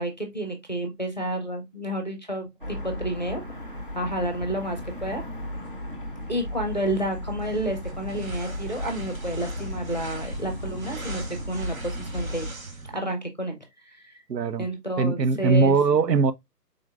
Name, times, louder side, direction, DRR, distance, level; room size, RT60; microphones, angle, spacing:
voice 1, 0.0-3.4 3.9-5.2 6.3-13.6 13.9-14.2 14.6-15.8, right 1 dB, 30° left, 0.6 m, -30 dB
sound 1, 2.6-12.5, left 1 dB, 35° right, 0.5 m, -35 dB
sound 2, 7.4-13.0, right 3 dB, 55° right, 1.1 m, -41 dB
voice 2, 14.3-14.7 15.0-16.3, right 4 dB, 80° right, 0.6 m, -21 dB
3.8 x 3.4 x 2.3 m
figure-of-eight pair, 150°, 49 cm